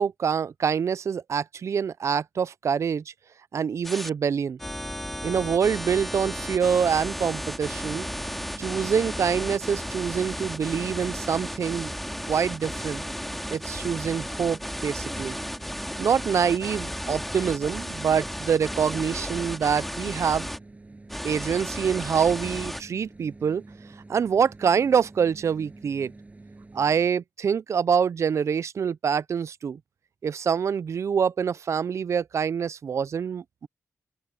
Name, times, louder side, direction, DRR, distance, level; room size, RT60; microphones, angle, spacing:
voice 1, 0.0-3.1 3.5-4.6 5.2-8.1 8.6-11.9 12.3-13.0 13.5-15.4 16.0-20.5 21.2-23.6 24.1-26.1 26.7-29.8 30.2-33.7, right 7 dB, 60° right, 0.5 m, -25 dB
sound 1, 3.8-4.1 4.6-20.6 21.1-22.8, equal, 5° left, 2.2 m, -34 dB
sound 2, 7.8-27.1, right 2 dB, 25° right, 7.8 m, -47 dB
open air
cardioid pair, 80°, 6 cm